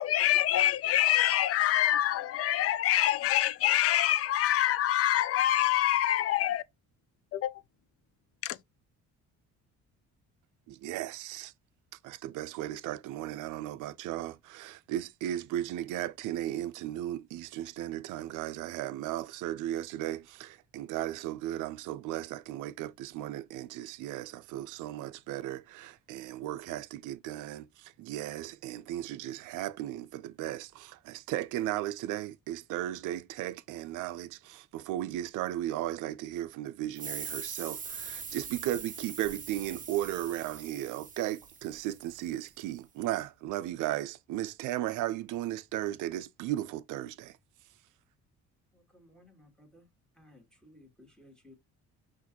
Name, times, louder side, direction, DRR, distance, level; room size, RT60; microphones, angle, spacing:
voice 1, 0.0-6.6 7.3-7.5 8.4-8.6, left 13 dB, 50° left, 0.4 m, -26 dB
voice 2, 10.7-11.5 12.0-47.4, right 13 dB, 75° right, 0.5 m, -36 dB
sound 1, 36.9-42.3, right 6 dB, 25° right, 0.7 m, -42 dB
voice 3, 48.7-49.9 50.1-51.5, left 1 dB, ahead, 1.6 m, -58 dB
6.0 x 2.6 x 2.8 m
cardioid pair, 120°, 31 cm